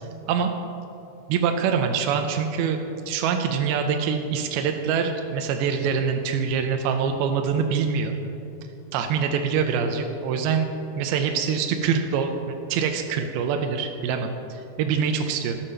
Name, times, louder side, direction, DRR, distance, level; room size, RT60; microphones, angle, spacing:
voice 1, 1.3-2.8 3.1-8.2 8.9-10.7 11.0-15.6, right 6 dB, 85° right, 5 dB, 2.6 m, -24 dB
18.5 x 7.5 x 5.5 m, 2.9 s
omnidirectional pair, 4.4 m